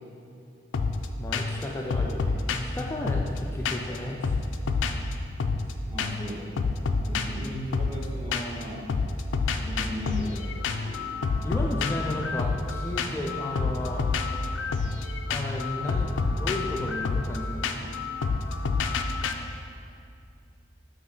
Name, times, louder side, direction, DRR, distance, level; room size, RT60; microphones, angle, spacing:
sound 1, 0.7-1.1 1.3-1.6 1.9-4.0 4.2-5.7 6.0-6.3 6.6-8.6 8.9-19.3, left 4 dB, 85° left, 0.4 m, -28 dB
voice 1, 1.2-4.4 11.4-14.1 15.3-17.7, left 1 dB, 15° left, -1 dB, 0.3 m, -33 dB
voice 2, 5.9-6.7 7.0-8.9 9.6-11.1, equal, 30° right, -4 dB, 1.2 m, -37 dB
7.8 x 3.1 x 5.4 m, 2.6 s
head